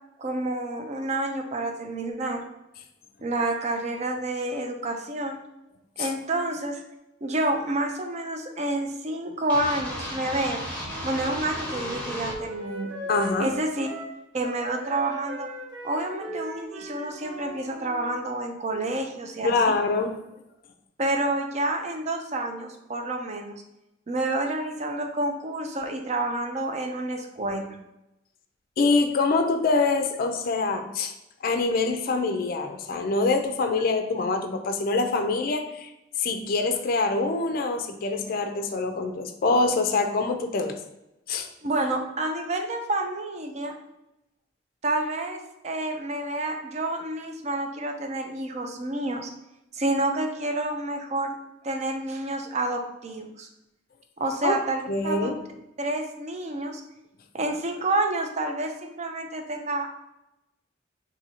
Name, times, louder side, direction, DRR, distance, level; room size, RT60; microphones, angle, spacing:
voice 1, 0.2-2.4 3.2-5.4 6.0-6.8 7.2-10.6 11.0-12.9 13.4-13.9 14.3-15.5 15.8-19.8 21.0-23.6 24.1-27.8 41.6-43.7 44.8-49.3 49.7-51.3 51.6-53.5 54.2-55.3 55.8-56.8 57.3-59.9, right 2 dB, 35° right, 4 dB, 0.5 m, -29 dB
sound 1, 9.5-12.4, equal, 10° left, 1.1 m, -34 dB
Wind instrument woodwind instrument, 10.8-18.1, right 1 dB, 85° right, 0.8 m, -39 dB
voice 2, 13.1-13.5 19.4-20.1 28.8-31.1 31.4-35.9 36.2-40.8 41.3-41.5 54.4-54.6 54.9-55.4, left 3 dB, 50° left, 6 dB, 0.4 m, -25 dB
2.7 x 2.6 x 4.2 m, 0.89 s
head